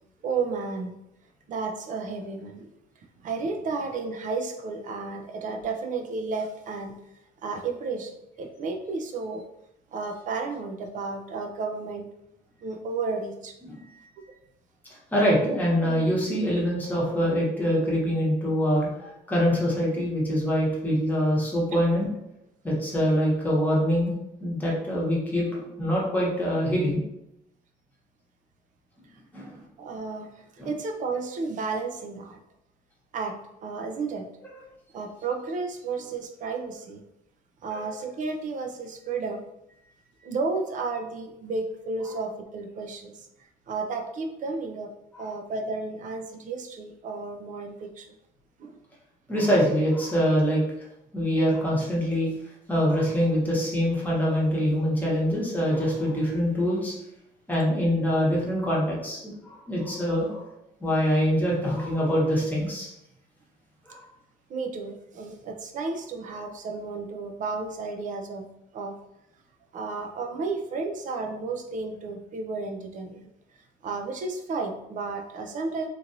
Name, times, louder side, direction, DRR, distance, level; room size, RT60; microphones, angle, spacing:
voice 1, 0.2-0.9 1.5-2.7 3.2-6.9 7.4-9.4 9.9-12.1 12.6-13.5 29.8-32.4 33.1-34.2 34.9-37.0 37.6-39.4 40.2-43.3 43.7-44.9 45.2-48.1 48.6-48.8 64.5-68.4 68.7-68.9 69.7-73.3 73.8-75.9, right 4 dB, 50° right, 4 dB, 0.5 m, -32 dB
voice 2, 15.1-22.1 22.6-24.1 24.4-27.0 29.3-29.6 30.6-30.7 37.7-37.9 45.1-45.3 49.3-50.6 51.1-52.3 52.7-56.9 57.5-60.5 60.8-62.9 63.9-64.0, equal, 10° left, -5 dB, 1.1 m, -24 dB
3.0 x 2.5 x 2.6 m, 0.82 s
cardioid pair, 110°, 17 cm